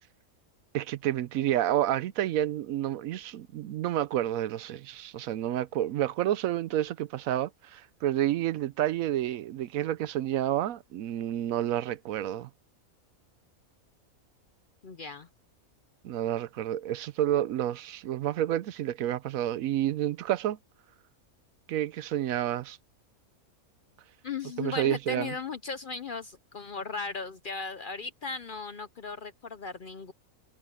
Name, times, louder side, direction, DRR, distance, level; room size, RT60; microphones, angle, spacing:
voice 1, 0.7-12.5 16.0-20.6 21.7-22.8 24.6-25.3, right 12 dB, 75° right, 1.0 m, -29 dB
voice 2, 14.8-15.3 24.2-30.1, left 5 dB, 50° left, 0.7 m, -37 dB
omnidirectional pair, 1.5 m